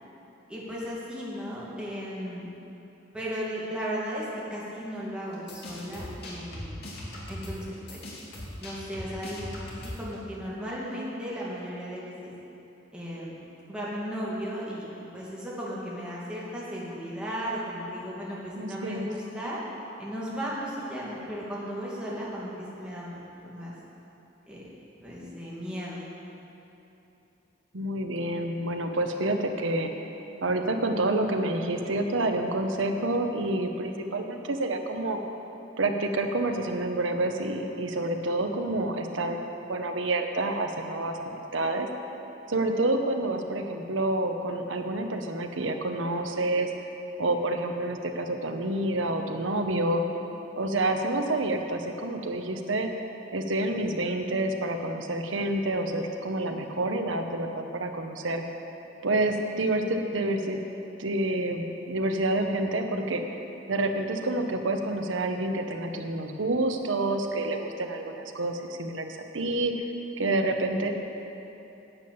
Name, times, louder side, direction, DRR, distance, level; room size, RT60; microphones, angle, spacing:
voice 1, 0.5-2.5 3.1-6.9 7.3-8.0 8.6-9.5 9.8-12.3 12.9-13.4 13.7-14.9 15.1-19.6 20.0-23.1 23.4-23.7 24.5-24.7 25.0-26.0, equal, 5° right, -7 dB, 2.3 m, -35 dB
sound 1, 5.3-10.1, left 1 dB, 55° left, 2.3 m, -39 dB
voice 2, 18.6-19.1 27.7-29.9 30.4-35.2 35.8-41.9 42.5-46.7 47.2-50.0 50.6-52.9 53.3-58.4 59.0-60.6 61.0-63.4 63.7-69.9 70.2-70.9, right 2 dB, 75° right, 5 dB, 1.0 m, -28 dB
10.5 x 8.7 x 7.1 m, 3.0 s
head